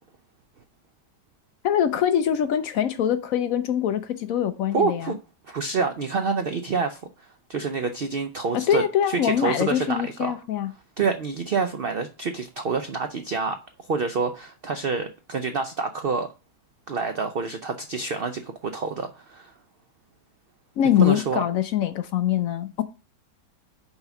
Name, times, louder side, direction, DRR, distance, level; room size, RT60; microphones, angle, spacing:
voice 1, 1.6-5.1 8.5-10.7 20.8-22.8, left 10 dB, 70° left, 0.9 m, -23 dB
voice 2, 4.7-5.2 5.5-10.4 11.0-16.3 16.9-19.5 21.0-21.4, right 4 dB, 85° right, 0.5 m, -27 dB
5.5 x 4.0 x 5.8 m
omnidirectional pair, 1.8 m